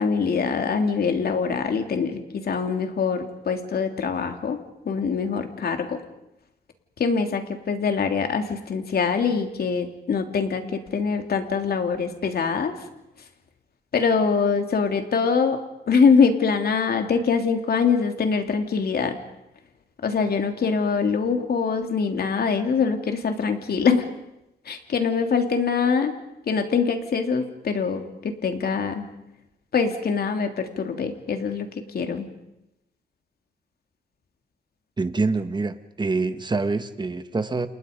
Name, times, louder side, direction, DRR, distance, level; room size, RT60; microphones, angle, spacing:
voice 1, 0.0-6.0 7.0-12.8 13.9-15.6 15.9-19.1 20.0-24.1 24.7-26.2 26.5-29.1 29.7-31.7 31.9-32.3, left 5 dB, 60° left, 5 dB, 3.2 m, -23 dB
voice 2, 35.0-37.7, right 3 dB, 25° right, 10 dB, 1.6 m, -26 dB
30.0 x 29.0 x 5.3 m, 0.88 s
cardioid pair, 105°, 18 cm